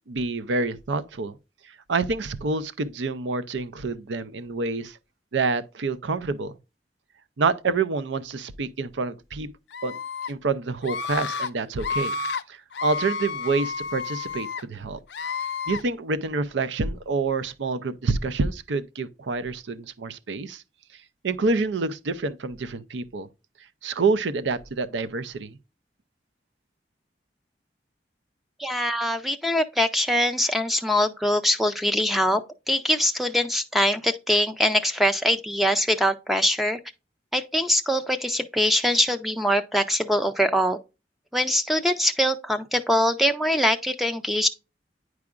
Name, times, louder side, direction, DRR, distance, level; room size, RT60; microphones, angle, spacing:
voice 1, 0.1-1.4 1.9-5.0 5.3-6.6 7.4-9.5 9.8-10.0 10.3-12.1 12.5-15.0 15.7-20.6 21.2-23.3 23.8-25.6, right 3 dB, 85° right, 0.5 m, -27 dB
Screaming, 9.7-10.3 10.8-11.5 11.8-12.4 12.7-14.6 15.1-15.8, left 5 dB, 75° left, 0.5 m, -30 dB
voice 2, 28.6-32.4 32.7-36.8 37.3-40.8 41.3-44.5, equal, ahead, 0.3 m, -23 dB
9.5 x 4.8 x 2.4 m
head